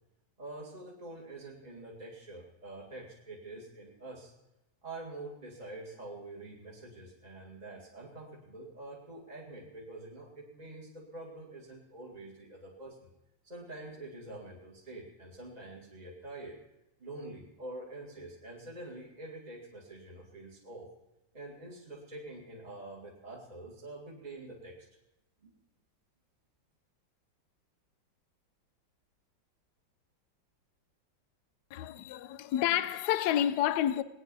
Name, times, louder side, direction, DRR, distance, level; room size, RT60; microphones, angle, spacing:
voice 1, 0.4-4.3 4.8-13.1 13.4-16.6 17.0-20.9 21.3-24.9 25.4-25.5, right 2 dB, 20° right, 2.2 m, -46 dB
voice 2, 31.7-34.0, left 11 dB, 70° left, 1.1 m, -29 dB
19.5 x 9.8 x 5.4 m
omnidirectional pair, 2.1 m